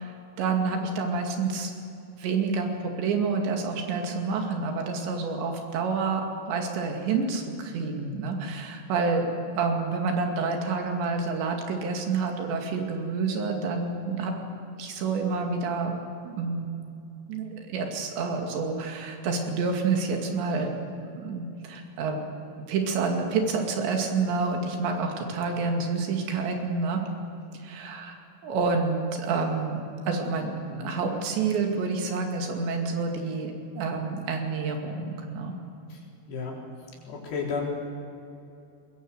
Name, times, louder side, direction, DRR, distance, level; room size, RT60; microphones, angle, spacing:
voice 1, 0.0-1.7 2.2-14.3 14.8-15.9 16.2-16.7 17.3-20.7 21.2-22.3 22.7-27.0 27.6-28.2 28.4-29.8 30.1-35.5, right 4 dB, 85° right, 3 dB, 4.7 m, -28 dB
voice 2, 30.7-31.0 36.3-36.6 37.1-37.7, left 5 dB, 70° left, -2 dB, 6.0 m, -32 dB
21.5 x 21.5 x 8.1 m, 2.7 s
omnidirectional pair, 5.0 m